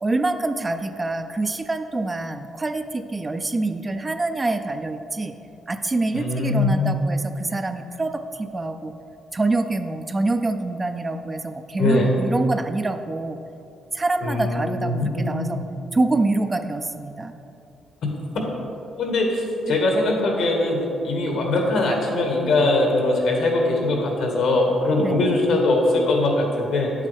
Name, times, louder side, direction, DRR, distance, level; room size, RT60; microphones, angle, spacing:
voice 1, 0.0-5.4 5.7-8.9 9.3-13.4 13.9-15.6 15.9-17.4 19.7-19.8 25.0-25.3, right 2 dB, 25° right, 8 dB, 0.4 m, -25 dB
voice 2, 6.1-7.0 11.8-12.1 14.2-15.6 19.0-20.8 21.0-26.9, left 2 dB, 75° left, 0 dB, 1.8 m, -21 dB
9.2 x 8.3 x 3.5 m, 2.7 s
cardioid pair, 115°, 0 cm